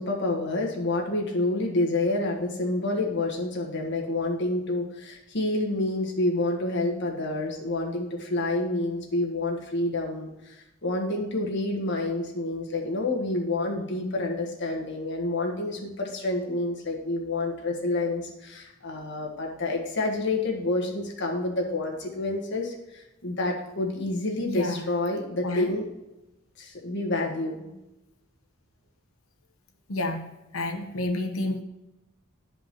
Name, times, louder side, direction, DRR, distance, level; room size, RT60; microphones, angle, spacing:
voice 1, 0.0-25.9 26.6-27.7, left 2 dB, 55° left, 0 dB, 1.4 m, -28 dB
voice 2, 24.5-24.8 25.4-25.7 29.9-31.6, left 2 dB, 80° left, 6 dB, 0.9 m, -30 dB
11.5 x 5.2 x 3.0 m, 0.95 s
head